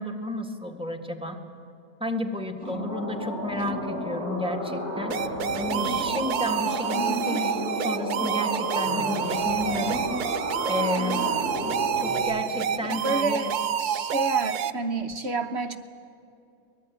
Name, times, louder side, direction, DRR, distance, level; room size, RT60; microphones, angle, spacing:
voice 1, 0.0-1.4 2.0-5.2 5.5-10.1 10.6-11.3 12.0-13.5, left 1 dB, 5° right, 3 dB, 1.7 m, -32 dB
sound 1, 2.6-12.2, equal, 70° left, 6.5 m, -32 dB
sound 2, 5.1-14.7, right 9 dB, 85° right, 1.4 m, -28 dB
voice 2, 6.9-7.4 10.9-11.4 12.8-13.5 13.8-15.8, right 3 dB, 50° right, 7 dB, 1.1 m, -30 dB
24.0 x 20.5 x 9.4 m, 2.7 s
omnidirectional pair, 1.6 m